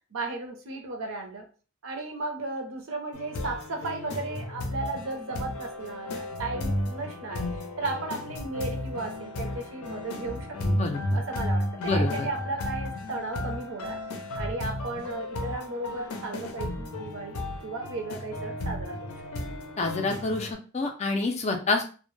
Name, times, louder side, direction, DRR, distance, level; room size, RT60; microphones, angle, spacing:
voice 1, 0.1-1.5 1.8-10.5 11.1-14.0 14.3-17.4 17.6-19.2, right 3 dB, 65° right, 3 dB, 0.6 m, -35 dB
sound 1, 3.1-20.5, left 1 dB, 90° left, 0.5 m, -33 dB
voice 2, 10.6-11.2 11.8-12.3 19.8-21.8, left 3 dB, 30° left, 4 dB, 0.3 m, -28 dB
2.1 x 2.1 x 3.0 m, 0.37 s
head